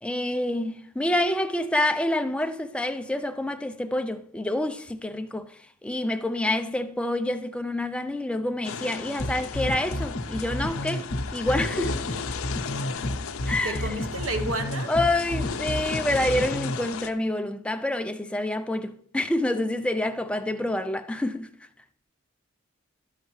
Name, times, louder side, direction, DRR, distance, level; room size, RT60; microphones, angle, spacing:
voice 1, 0.0-12.0 13.5-14.0 14.9-21.5, left 1 dB, 5° left, 0.3 m, -27 dB
sound 1, 8.6-17.1, left 6 dB, 80° left, 0.5 m, -35 dB
sound 2, 9.2-16.8, left 1 dB, 60° left, 0.9 m, -30 dB
voice 2, 13.6-14.9, right 2 dB, 75° right, 0.9 m, -31 dB
11.5 x 6.5 x 3.1 m
head